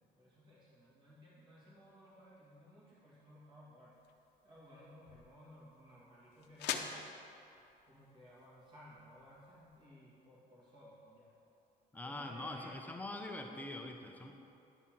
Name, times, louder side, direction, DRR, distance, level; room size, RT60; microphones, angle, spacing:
voice 1, 0.0-3.9 4.4-7.0 7.9-11.3 12.0-12.8, left 1 dB, 30° right, -8 dB, 2.2 m, -58 dB
sound 1, 3.9-9.9, left 8 dB, 80° left, 0.7 m, -47 dB
voice 2, 11.9-14.3, left 1 dB, 10° left, 3 dB, 0.5 m, -43 dB
10.5 x 4.2 x 7.4 m, 2.8 s
cardioid pair, 175°, 17 cm